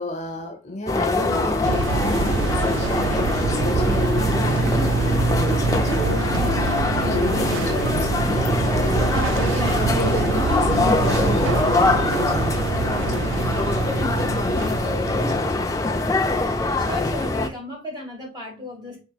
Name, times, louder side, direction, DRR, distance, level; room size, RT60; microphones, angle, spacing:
voice 1, 0.0-15.7, left 2 dB, 35° left, 3 dB, 0.9 m, -32 dB
sound 1, 0.9-17.5, left 2 dB, 15° left, 0.4 m, -23 dB
sound 2, 1.6-15.9, right 4 dB, 80° right, 0.4 m, -25 dB
voice 2, 16.5-19.0, left 1 dB, 20° right, -1 dB, 1.9 m, -34 dB
4.4 x 4.3 x 2.4 m, 0.33 s
head